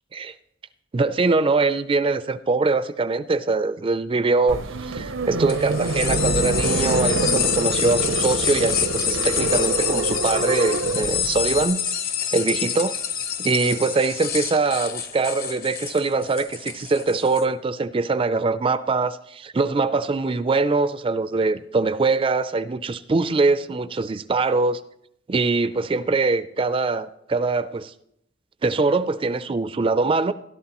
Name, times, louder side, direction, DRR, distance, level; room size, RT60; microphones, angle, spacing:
voice 1, 0.9-11.9 12.3-13.0 13.4-24.8 25.3-27.9 28.6-30.3, right 3 dB, 25° right, 0.4 m, -23 dB
sound 1, 4.5-11.6, right 3 dB, 85° right, 0.7 m, -26 dB
sound 2, 5.5-17.4, left 8 dB, 50° left, 1.0 m, -27 dB
16.5 x 11.5 x 3.0 m
head